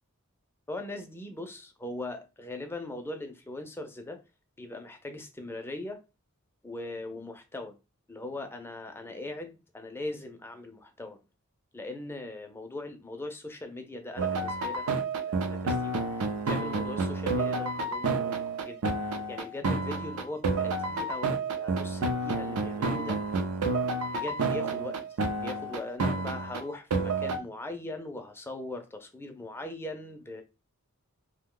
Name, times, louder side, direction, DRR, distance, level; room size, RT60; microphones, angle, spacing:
voice 1, 0.7-4.2 4.6-6.0 6.6-7.8 8.1-11.2 11.7-18.4 18.7-23.2 24.1-30.4, left 2 dB, 10° left, 0.4 m, -40 dB
sound 1, 14.2-27.4, right 3 dB, 80° right, 0.5 m, -30 dB
2.6 x 2.1 x 3.6 m
head